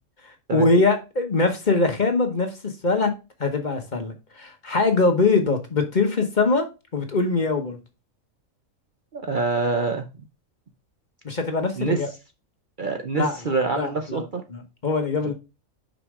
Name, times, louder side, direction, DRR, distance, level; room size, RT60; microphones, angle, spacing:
voice 1, 0.5-3.1 3.4-6.7 6.9-7.8 11.2-12.1 13.1-13.4 13.8-14.2 14.5-15.3, left 3 dB, 35° left, 1.2 m, -22 dB
voice 2, 9.1-10.1 11.8-12.0 12.8-14.4, right 4 dB, 45° right, 0.7 m, -25 dB
5.8 x 5.1 x 4.8 m
omnidirectional pair, 1.4 m